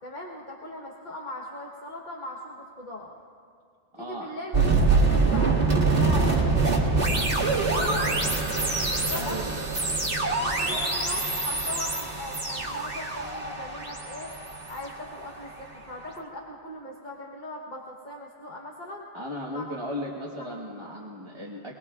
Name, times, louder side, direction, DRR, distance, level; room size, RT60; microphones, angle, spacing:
voice 1, 0.0-3.1 3.9-8.5 9.0-9.6 10.4-14.3 14.7-19.0 19.5-19.6, left 1 dB, 45° left, -2 dB, 1.3 m, -39 dB
voice 2, 4.0-4.3 9.1-9.6 10.7-10.8 19.1-21.7, equal, 25° right, -4 dB, 1.3 m, -36 dB
sound 1, 4.5-15.6, right 3 dB, 50° right, 2.2 m, -25 dB
25.0 x 20.0 x 2.4 m, 2.3 s
omnidirectional pair, 1.2 m